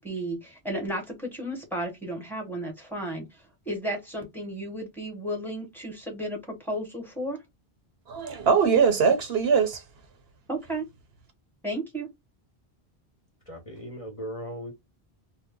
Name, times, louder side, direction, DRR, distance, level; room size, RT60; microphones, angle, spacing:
voice 1, 0.0-7.4 10.5-10.8 11.6-12.1, right 1 dB, ahead, 1.1 m, -33 dB
voice 2, 8.1-9.8, right 6 dB, 70° right, 0.9 m, -21 dB
voice 3, 13.5-14.7, equal, 35° left, 0.9 m, -37 dB
2.7 x 2.1 x 3.6 m
omnidirectional pair, 1.1 m